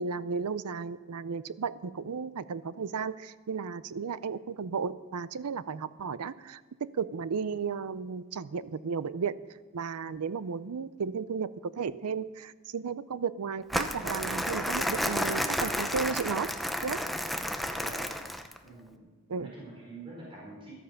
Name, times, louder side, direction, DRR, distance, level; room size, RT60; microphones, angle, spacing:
voice 1, 0.0-9.4 9.7-16.5 16.8-17.0 19.3-19.5, right 5 dB, 85° right, 16 dB, 0.5 m, -34 dB
Crumpling crinkling, 13.7-18.6, equal, ahead, 0.7 m, -31 dB
voice 2, 17.3-18.1 18.6-19.1 19.3-20.8, right 2 dB, 25° right, -5 dB, 4.4 m, -47 dB
14.0 x 12.5 x 5.6 m, 1.3 s
head